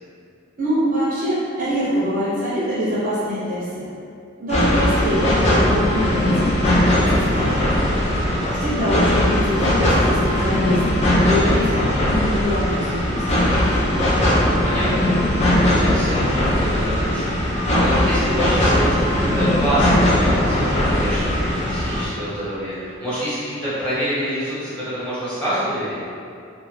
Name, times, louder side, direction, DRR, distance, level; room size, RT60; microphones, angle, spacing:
voice 1, 0.6-3.9 4.4-7.8 8.6-11.7 12.1-13.4, equal, 40° right, -9 dB, 0.6 m, -24 dB
sound 1, 4.5-22.0, left 1 dB, 30° left, 0.5 m, -19 dB
voice 2, 8.0-8.8 14.2-26.0, equal, 5° left, -13 dB, 1.1 m, -27 dB
2.4 x 2.3 x 3.0 m, 2.4 s
head